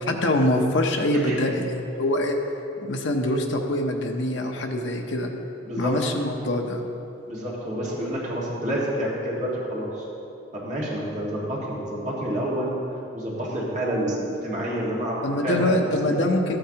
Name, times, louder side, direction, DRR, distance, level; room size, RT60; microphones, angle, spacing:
voice 1, 0.1-2.4 2.9-5.3 5.8-6.9 15.2-16.6, left 1 dB, 65° left, 2 dB, 0.8 m, -24 dB
voice 2, 7.3-10.0 10.6-12.8 13.1-16.1, equal, 35° right, -6 dB, 1.9 m, -28 dB
13.0 x 9.0 x 2.9 m, 2.9 s
head